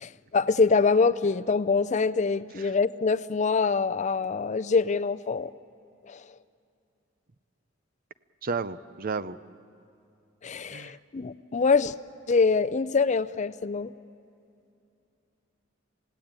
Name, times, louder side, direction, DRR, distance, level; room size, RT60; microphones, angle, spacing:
voice 1, 0.0-5.5 6.1-6.3 10.4-11.9 12.3-13.9, left 4 dB, 40° left, 13 dB, 0.5 m, -24 dB
voice 2, 8.4-9.4 10.7-11.0, right 4 dB, 50° right, 14 dB, 0.6 m, -32 dB
27.5 x 17.0 x 8.9 m, 2.7 s
head